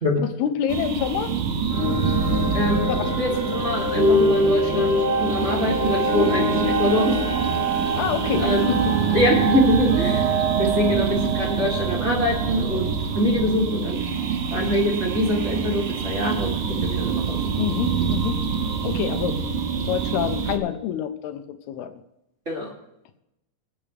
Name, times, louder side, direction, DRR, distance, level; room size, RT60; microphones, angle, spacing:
voice 1, 0.2-1.4 2.9-3.4 7.7-9.0 17.5-18.4 18.8-19.4 19.9-22.0, left 9 dB, 80° left, 9 dB, 2.8 m, -27 dB
sound 1, 0.7-20.6, right 6 dB, 65° right, 2.0 m, -26 dB
sound 2, 1.7-12.9, right 1 dB, 40° right, 2.9 m, -24 dB
voice 2, 2.5-2.9 3.2-7.2 8.4-8.6 9.1-10.3 10.6-12.9 13.1-14.0 14.5-17.4 22.5-22.7, equal, 20° right, -4 dB, 2.5 m, -24 dB
25.5 x 8.9 x 3.3 m, 0.85 s
omnidirectional pair, 4.6 m